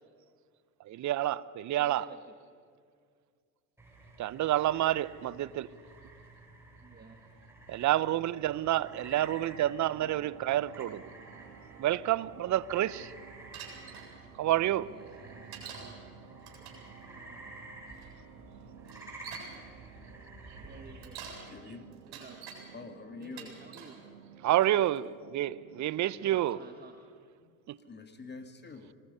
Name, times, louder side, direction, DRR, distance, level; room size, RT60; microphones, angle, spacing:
voice 1, 0.8-2.1 4.2-5.7 7.7-11.0 11.8-13.1 14.4-14.9 24.4-26.6 27.7-27.8, right 13 dB, 40° right, 0.8 m, -29 dB
voice 2, 1.8-2.4 6.8-7.3 10.9-11.0 11.4-11.5 14.7-16.1 16.5-16.8 17.1-17.7 20.6-21.2 22.0-22.4 23.2-24.0 26.2-26.9, right 4 dB, 20° right, 1.7 m, -54 dB
sound 1, 3.8-21.4, right 2 dB, 5° right, 7.4 m, -51 dB
sound 2, 8.7-26.4, right 8 dB, 85° right, 1.6 m, -54 dB
Bicycle, 13.5-14.1 15.5-15.9 16.4-16.9 18.0-18.1 18.9-19.5 20.8-21.4 21.9-22.6 23.2-24.0 24.6-25.0, right 7 dB, 55° right, 7.4 m, -46 dB
voice 3, 21.5-21.8 22.7-23.5 27.4-27.6 27.9-28.9, left 4 dB, 20° left, 2.1 m, -45 dB
26.5 x 20.0 x 5.6 m
hypercardioid pair, 80°, 45 cm